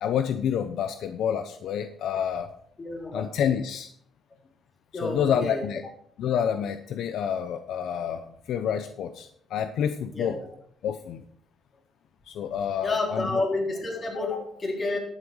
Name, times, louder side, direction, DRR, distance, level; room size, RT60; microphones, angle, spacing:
voice 1, 0.0-2.5 3.1-3.9 5.0-5.8 6.2-10.4 10.8-11.2 12.3-13.4, left 8 dB, 75° left, 9 dB, 0.7 m, -28 dB
voice 2, 2.8-3.4 4.9-5.7 10.1-10.5 12.8-15.0, left 2 dB, 35° left, 0 dB, 3.9 m, -30 dB
13.0 x 8.3 x 4.8 m, 0.66 s
cardioid pair, 90°, 0 cm